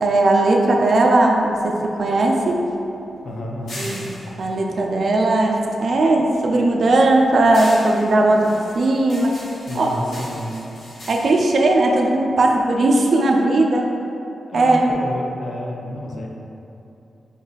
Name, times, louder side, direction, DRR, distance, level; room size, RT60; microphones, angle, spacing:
voice 1, 0.0-2.6 3.8-4.0 4.4-8.5 8.8-9.4 9.7-9.9 11.1-13.9 14.5-14.9, right 2 dB, 60° right, 1 dB, 0.5 m, -17 dB
sound 1, 1.3-5.8 6.2-12.6, left 1 dB, 90° left, 1.0 m, -40 dB
voice 2, 3.2-4.1 9.7-10.6 14.5-16.3, left 1 dB, 65° left, -1 dB, 0.6 m, -30 dB
5.3 x 2.4 x 3.9 m, 2.8 s
wide cardioid pair, 95°, 0 cm